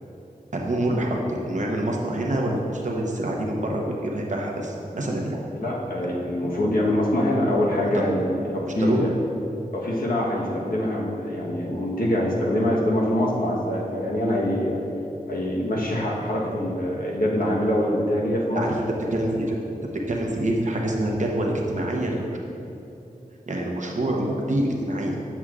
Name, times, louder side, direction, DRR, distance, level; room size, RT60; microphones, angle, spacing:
voice 1, 0.5-5.4 8.1-8.2 8.8-9.0 18.5-18.7 19.1-19.6 20.1-22.2 23.5-25.2, right 1 dB, 55° right, -1 dB, 0.9 m, -26 dB
voice 2, 5.6-9.1 9.7-14.8 15.3-18.6, left 1 dB, 75° left, -3 dB, 1.1 m, -24 dB
7.8 x 7.1 x 2.4 m, 2.8 s
wide cardioid pair, 90°, 15 cm